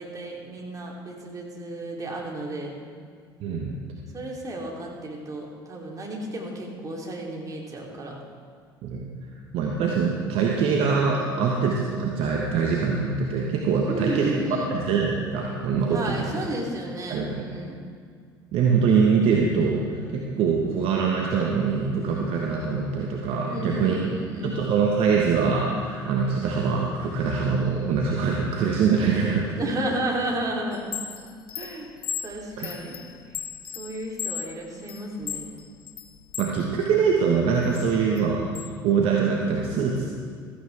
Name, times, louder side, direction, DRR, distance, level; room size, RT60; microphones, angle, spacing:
voice 1, 0.0-2.8 4.1-8.2 13.9-14.7 15.8-17.8 23.4-24.6 29.6-30.8 31.6-31.9 32.2-33.0 33.7-35.5, right 1 dB, 30° right, -2 dB, 3.1 m, -32 dB
voice 2, 3.4-3.8 8.8-9.1 9.5-16.3 17.1-17.4 18.5-24.1 24.4-29.5 32.6-32.7 36.4-40.0, right 5 dB, 55° right, -1 dB, 1.3 m, -24 dB
Chime, 30.7-36.6 37.0-38.7, left 9 dB, 70° left, 0.7 m, -36 dB
15.5 x 14.0 x 3.4 m, 2.1 s
figure-of-eight pair, 60°, 12 cm